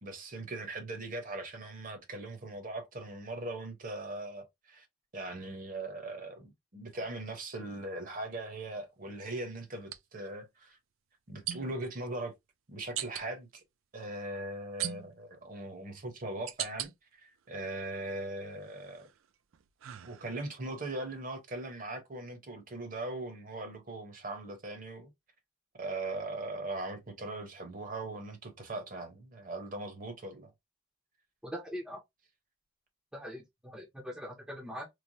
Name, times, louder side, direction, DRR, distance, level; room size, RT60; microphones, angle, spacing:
voice 1, 0.0-4.9 5.1-10.8 11.3-12.3 12.7-13.6 13.9-19.1 20.0-25.1 25.8-30.5, right 2 dB, 40° right, 0.8 m, -40 dB
sound 1, 7.0-7.2 9.8-10.0 11.5-11.9 13.0-13.3 14.8-15.4 16.0-16.9 17.5-18.1 18.6-20.6, right 12 dB, 75° right, 0.4 m, -40 dB
voice 2, 31.4-32.0 33.1-34.9, equal, 5° right, 0.5 m, -42 dB
3.1 x 2.2 x 2.6 m
head